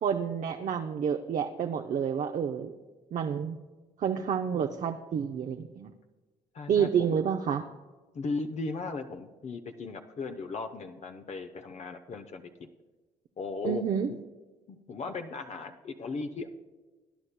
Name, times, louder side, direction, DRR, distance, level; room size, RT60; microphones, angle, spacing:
voice 1, 0.0-2.7 3.1-3.6 4.0-5.9 6.7-7.6 13.6-14.1, right 7 dB, 50° right, 5 dB, 0.6 m, -29 dB
voice 2, 6.5-7.2 8.1-12.7 13.4-14.2 14.7-16.5, left 3 dB, 45° left, 6 dB, 0.8 m, -37 dB
19.0 x 9.8 x 2.2 m, 1.2 s
supercardioid pair, 60°, 16 cm